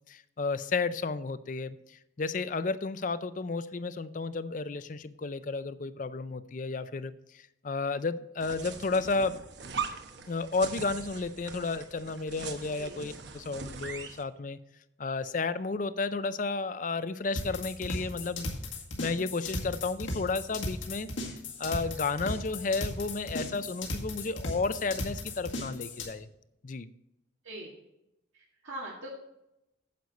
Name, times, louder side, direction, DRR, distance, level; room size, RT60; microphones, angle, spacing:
voice 1, 0.1-9.4 10.3-14.6 15.0-18.5 19.0-26.3 26.6-26.9, left 3 dB, 40° left, 14 dB, 0.5 m, -32 dB
sound 1, 8.4-14.2, right 5 dB, 65° right, 1.0 m, -41 dB
sound 2, 17.4-26.1, left 2 dB, 90° left, 2.0 m, -36 dB
voice 2, 28.3-29.1, right 1 dB, 85° right, -5 dB, 2.0 m, -42 dB
9.5 x 7.9 x 4.1 m, 0.87 s
head